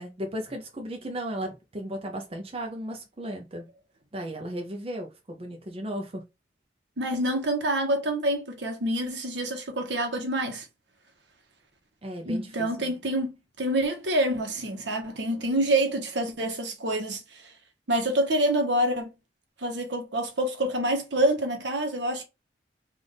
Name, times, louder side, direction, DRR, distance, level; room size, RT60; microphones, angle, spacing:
voice 1, 0.0-3.7 4.1-6.2 12.0-12.7, equal, 30° right, 0.6 m, -35 dB
voice 2, 7.0-10.6 12.2-17.5 17.9-19.1 19.6-22.2, right 1 dB, 70° right, 1.1 m, -27 dB
3.4 x 2.5 x 3.9 m
head